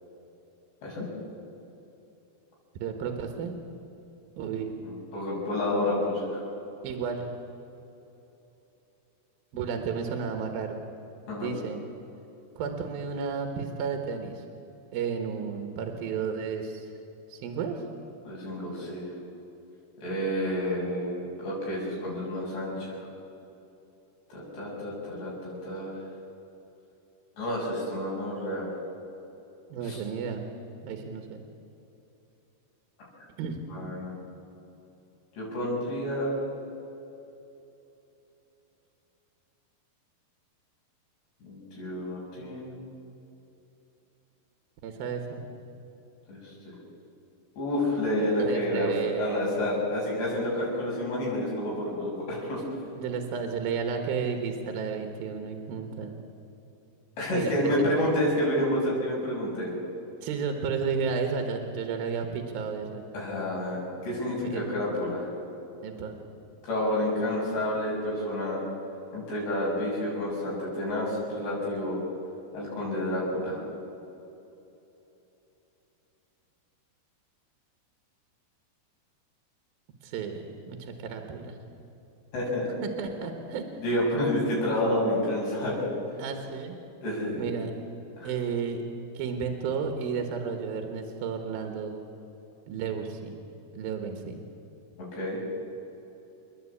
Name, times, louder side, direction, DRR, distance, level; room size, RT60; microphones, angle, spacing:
voice 1, 2.8-3.5 4.4-4.7 6.8-7.3 9.5-10.8 11.4-11.8 12.6-14.4 14.9-16.9 17.3-17.8 29.7-30.4 30.8-31.4 33.4-33.6 44.8-45.4 48.4-49.5 53.0-56.1 57.3-57.7 60.2-63.0 64.4-64.6 65.8-66.2 80.0-81.6 82.8-83.7 86.2-86.8 87.4-87.7 88.2-88.8 89.1-92.0 92.7-93.3 93.7-94.4, right 6 dB, 70° right, 5 dB, 3.0 m, -32 dB
voice 2, 4.8-6.4 11.3-11.5 18.3-19.1 20.0-23.0 24.3-26.0 27.4-28.7 29.9-30.0 33.7-34.1 35.4-36.3 41.4-42.7 46.3-46.5 47.6-48.9 49.2-52.6 57.2-59.7 63.1-65.3 66.6-68.6 69.1-72.0 72.5-73.6 82.3-82.7 83.8-85.9 87.0-87.5 88.2-88.3 95.0-95.4, left 1 dB, 80° left, -5 dB, 8.8 m, -29 dB
29.5 x 10.5 x 8.5 m, 3.0 s
omnidirectional pair, 4.8 m